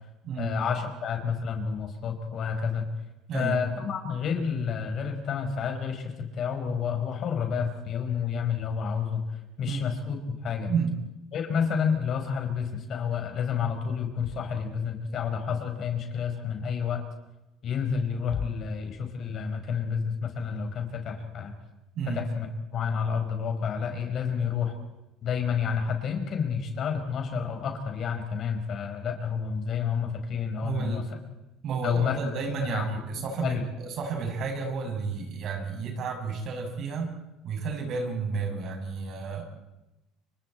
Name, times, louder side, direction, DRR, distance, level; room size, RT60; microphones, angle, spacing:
voice 1, 0.4-2.9 3.3-10.2 10.4-10.7 11.3-17.0 17.6-21.6 22.1-24.7 25.2-31.0 31.8-32.2 32.6-33.0 33.4-33.7, left 6 dB, 50° left, 4 dB, 5.0 m, -30 dB
voice 2, 30.6-31.0 31.6-37.2 37.4-39.4, right 4 dB, 55° right, 2 dB, 7.1 m, -31 dB
30.0 x 25.0 x 4.5 m, 0.98 s
supercardioid pair, 90°, 0 cm